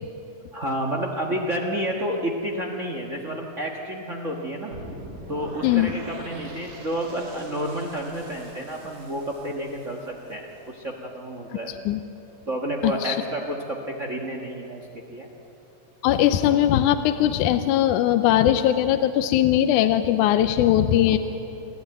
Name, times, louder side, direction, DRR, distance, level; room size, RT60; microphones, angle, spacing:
voice 1, 0.5-4.8 5.3-11.7 12.5-15.3 21.1-21.2, right 1 dB, 45° right, 1 dB, 0.9 m, -30 dB
sound 1, 4.7-10.7, right 1 dB, 85° right, 5.0 m, -43 dB
voice 2, 12.8-13.2 16.0-21.2, left 12 dB, 80° left, 10 dB, 2.0 m, -20 dB
29.0 x 11.5 x 9.1 m, 2.9 s
omnidirectional pair, 3.8 m